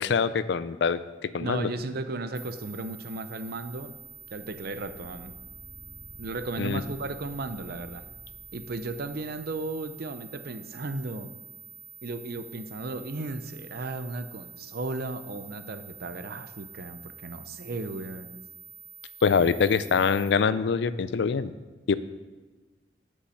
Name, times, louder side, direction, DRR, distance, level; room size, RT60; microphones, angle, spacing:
voice 1, 0.0-1.7 6.6-6.8 19.2-21.5 21.9-22.0, left 5 dB, 70° left, 15 dB, 0.4 m, -24 dB
voice 2, 1.4-4.0 4.3-5.3 6.2-8.1 8.5-11.3 12.0-18.3, right 2 dB, 60° right, 10 dB, 0.6 m, -35 dB
sound 1, 2.3-20.3, right 5 dB, 20° left, 1.8 m, -48 dB
sound 2, 3.7-9.9, equal, 35° left, 1.7 m, -51 dB
9.9 x 5.4 x 6.4 m, 1.2 s
head